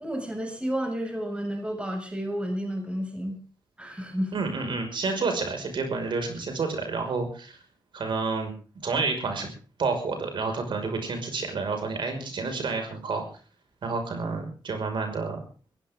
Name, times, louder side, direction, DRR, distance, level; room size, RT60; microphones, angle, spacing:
voice 1, 0.0-3.4 3.8-4.3, equal, 15° right, 2 dB, 6.9 m, -31 dB
voice 2, 4.3-7.6 7.9-8.5 8.8-9.5 9.8-13.2 13.8-15.4, right 4 dB, 75° right, 4 dB, 5.8 m, -29 dB
22.0 x 16.0 x 3.8 m, 0.37 s
cardioid pair, 85°, 8 cm